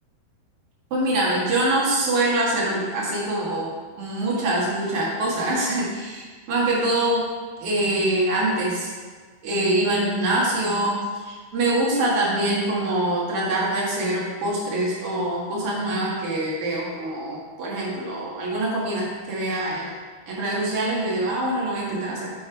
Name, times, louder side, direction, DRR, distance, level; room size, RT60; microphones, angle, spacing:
voice 1, 0.9-7.3 7.6-8.9 9.4-19.9 20.3-22.3, right 1 dB, 60° right, -5 dB, 1.5 m, -24 dB
7.0 x 5.2 x 4.6 m, 1.4 s
omnidirectional pair, 4.9 m